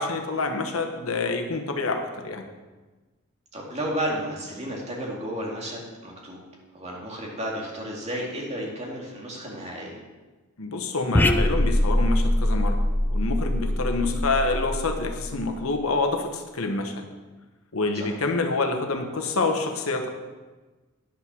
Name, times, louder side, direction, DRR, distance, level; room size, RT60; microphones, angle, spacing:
voice 1, 0.0-2.4 10.6-12.8 13.1-16.9 17.7-20.1, left 3 dB, 80° left, 4 dB, 1.1 m, -27 dB
voice 2, 3.5-6.4 6.7-10.0 17.9-18.1, equal, 30° right, -2 dB, 2.2 m, -32 dB
sound 1, 11.1-15.8, left 1 dB, 10° left, 0.5 m, -23 dB
10.0 x 5.9 x 6.1 m, 1.2 s
head